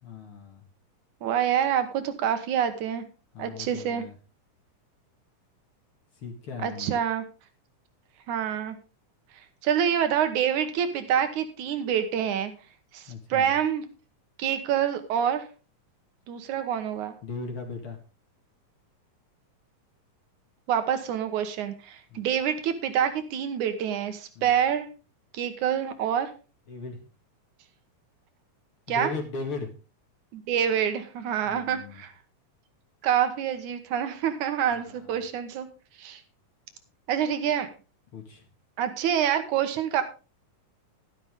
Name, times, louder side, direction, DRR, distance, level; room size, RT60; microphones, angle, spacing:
voice 1, 0.0-0.7 3.3-4.1 6.2-6.9 13.1-13.5 17.2-18.0 22.1-22.3 24.3-24.5 26.7-27.0 28.9-29.7 31.5-32.0 34.7-35.2 38.1-38.4, left 4 dB, 45° left, 3 dB, 2.5 m, -38 dB
voice 2, 1.2-3.0 3.4-4.0 6.6-7.2 8.3-8.8 9.6-12.5 12.9-13.8 14.4-15.5 16.3-17.1 20.7-24.9 25.3-26.3 28.9-29.1 30.3-32.1 33.0-35.7 36.0-36.2 37.1-37.7 38.8-40.0, right 9 dB, 70° right, 9 dB, 2.5 m, -26 dB
11.5 x 11.0 x 3.7 m, 0.34 s
omnidirectional pair, 3.8 m